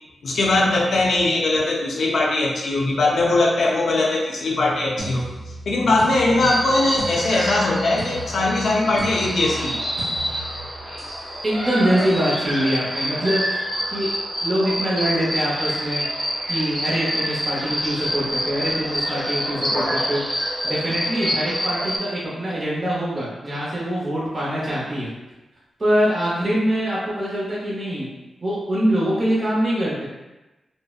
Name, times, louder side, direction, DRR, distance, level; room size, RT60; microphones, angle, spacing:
voice 1, 0.2-5.3 5.7-9.8, left 2 dB, 70° left, -1 dB, 0.5 m, -20 dB
sound 1, 5.0-11.3 12.0-12.3, right 2 dB, 75° right, 1.2 m, -36 dB
sound 2, 6.4-22.0, equal, 15° right, 1.0 m, -27 dB
voice 2, 11.4-13.6 13.9-14.1 14.4-16.0 16.5-20.2 20.6-25.1 25.8-28.1 28.4-30.0, equal, 30° right, -7 dB, 0.7 m, -23 dB
2.7 x 2.1 x 2.3 m, 1.1 s
wide cardioid pair, 95°, 0 cm